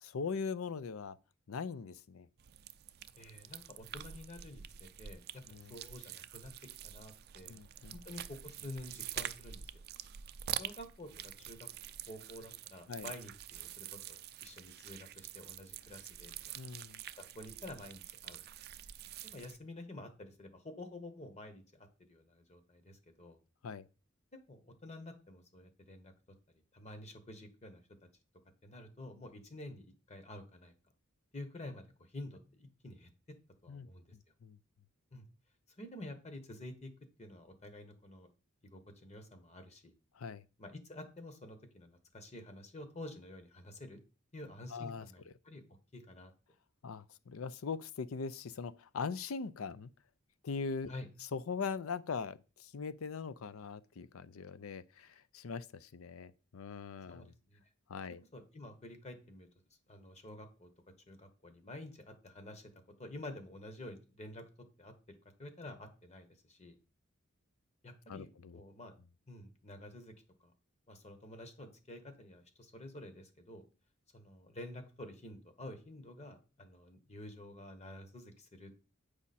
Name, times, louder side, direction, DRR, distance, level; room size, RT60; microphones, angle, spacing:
voice 1, 0.0-1.2 1.5-2.3 5.5-5.7 7.5-8.0 12.9-13.1 16.6-17.0 23.6-23.9 33.7-33.9 34.4-34.6 40.2-40.4 44.7-45.1 46.8-49.9 50.4-50.9 51.3-57.3 57.9-58.2 68.1-68.6, left 5 dB, 85° left, 0.5 m, -41 dB
sound 1, 2.4-19.6, right 11 dB, 50° right, 0.4 m, -46 dB
voice 2, 3.2-6.5 6.8-7.6 7.9-9.6 10.6-11.7 12.1-16.6 17.1-18.4 19.2-23.4 24.5-26.1 26.7-27.8 28.6-30.7 31.3-33.1 33.6-34.0 35.1-35.2 35.8-36.9 37.2-38.3 38.7-39.9 40.6-44.0 44.3-45.6 45.9-46.3 50.9-51.1 57.1-57.6 58.3-59.5 59.9-60.7 61.1-62.7 63.0-64.4 64.8-66.8 67.8-68.9 69.3-70.1 70.4-70.5 70.9-73.6 74.1-78.7, left 1 dB, 35° left, 1.2 m, -49 dB
8.4 x 5.0 x 4.2 m
head